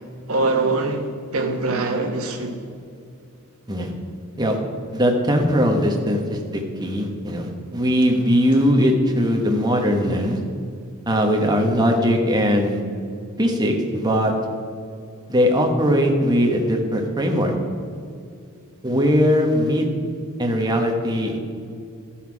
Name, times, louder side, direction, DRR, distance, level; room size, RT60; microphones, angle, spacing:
voice 1, 0.3-2.6, right 3 dB, 70° right, 3 dB, 1.2 m, -23 dB
voice 2, 4.9-10.4 11.1-12.8 13.4-14.3 15.3-17.5 18.8-19.8 20.4-21.4, equal, 20° right, 2 dB, 1.1 m, -20 dB
13.0 x 5.8 x 4.7 m, 2.4 s
head